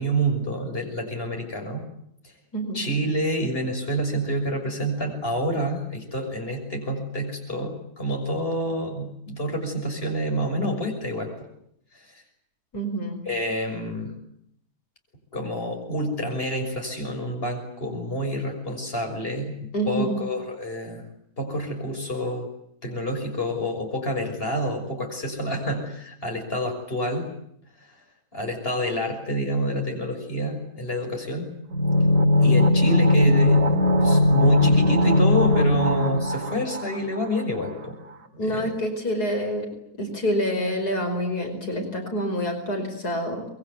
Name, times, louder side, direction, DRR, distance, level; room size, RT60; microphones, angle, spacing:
voice 1, 0.0-1.8 2.2-2.3 2.7-11.3 11.9-12.1 13.2-14.1 15.3-19.6 19.8-21.0 21.4-22.5 22.8-27.3 28.3-31.5 32.4-38.0 38.3-38.7, equal, 35° left, 3 dB, 6.5 m, -28 dB
voice 2, 2.5-2.8 12.7-13.2 19.7-20.2 38.4-39.7 40.0-43.5, equal, 75° left, 4 dB, 5.6 m, -27 dB
sound 1, 31.7-37.4 37.7-37.8, left 2 dB, 55° right, 2.8 m, -19 dB
25.5 x 22.0 x 9.6 m, 0.74 s
omnidirectional pair, 1.7 m